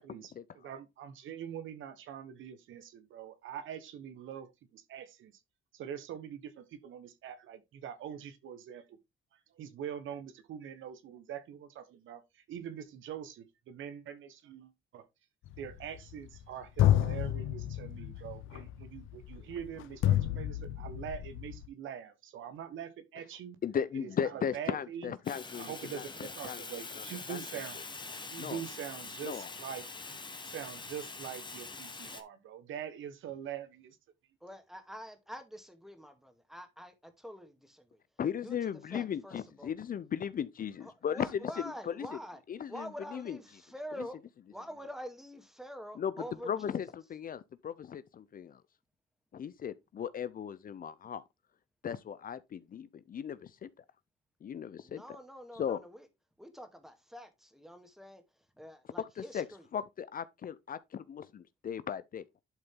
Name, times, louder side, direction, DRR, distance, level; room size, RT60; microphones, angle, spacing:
voice 1, 0.0-5.4 5.7-9.0 9.3-15.0 15.6-23.6 24.0-25.1 25.5-27.8 28.2-34.0, right 9 dB, 80° right, 1.3 m, -44 dB
sound 1, 15.5-16.4 16.8-21.7, left 12 dB, 85° left, 0.6 m, -30 dB
voice 2, 23.6-26.6 27.3-27.4 28.4-28.6 29.2-29.5 38.2-41.3 41.6-42.1 42.5-43.4 46.0-46.1 46.5-48.6 49.3-51.2 51.8-53.8 54.4-55.0 55.6-55.8 59.2-59.5 59.7-62.2, left 8 dB, 45° left, 0.6 m, -37 dB
Fire, 25.2-32.2, left 3 dB, 25° left, 1.5 m, -44 dB
voice 3, 34.4-38.0 38.4-39.7 40.8-42.4 42.7-44.2 44.5-46.9 54.8-56.1 56.4-58.2 58.6-59.7, equal, ahead, 2.1 m, -46 dB
11.5 x 4.0 x 3.7 m
cardioid pair, 90°, 20 cm